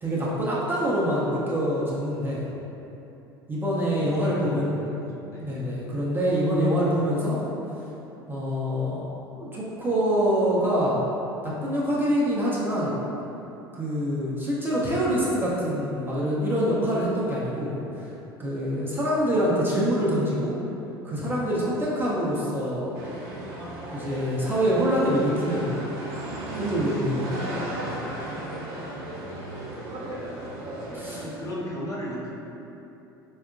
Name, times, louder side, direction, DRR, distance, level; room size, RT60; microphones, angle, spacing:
voice 1, 0.0-2.5 3.5-4.7 5.4-7.4 8.3-9.0 9.4-11.0 11.4-13.0 13.7-17.8 18.4-20.6 21.0-23.0 23.9-25.8 26.6-27.7 30.9-31.2, equal, 15° right, -7 dB, 0.6 m, -25 dB
voice 2, 4.0-4.9 5.2-5.5 29.0-29.7 30.9-32.3, equal, 25° left, -6 dB, 0.7 m, -36 dB
sound 1, 22.9-31.5, right 1 dB, 55° right, 0.7 m, -35 dB
4.2 x 2.3 x 2.4 m, 3.0 s
figure-of-eight pair, 70°, 12 cm